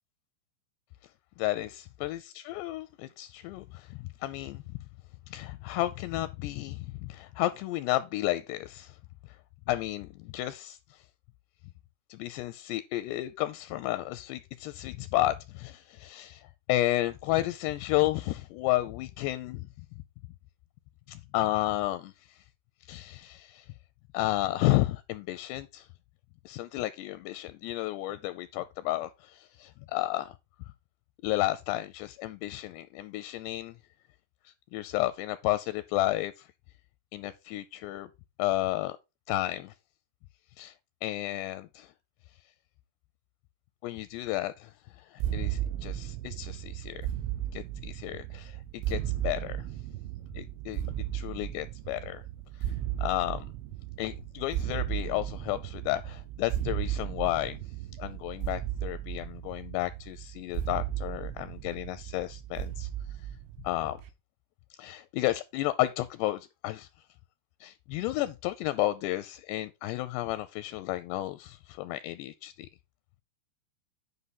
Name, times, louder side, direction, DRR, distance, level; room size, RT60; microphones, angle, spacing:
voice 1, 1.4-4.6 5.3-9.0 9.7-11.0 12.1-19.7 21.1-22.4 22.9-23.7 24.1-25.9 26.5-30.3 31.2-33.7 34.5-36.5 37.1-38.1 38.4-39.0 39.3-39.7 40.6-40.7 41.0-41.9 43.8-47.0 47.5-49.7 50.3-52.2 52.6-52.7 53.0-53.5 54.0-57.6 58.0-62.9 63.6-64.0 64.8-66.9 67.6-72.7, left 16 dB, 80° left, 2.5 m, -32 dB
sound 1, 45.2-64.1, right 12 dB, 85° right, 3.3 m, -35 dB
9.7 x 5.6 x 4.1 m
omnidirectional pair, 5.2 m